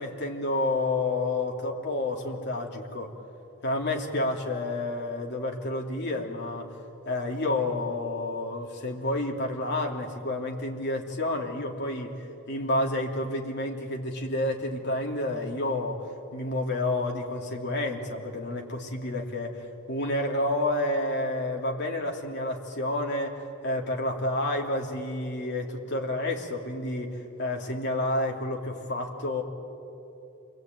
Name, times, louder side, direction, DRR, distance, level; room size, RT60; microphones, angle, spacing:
voice 1, 0.0-3.1 3.6-6.7 7.0-16.1 16.3-23.4 23.6-29.4, left 2 dB, 60° left, 1 dB, 3.1 m, -30 dB
29.0 x 22.0 x 9.3 m, 2.9 s
head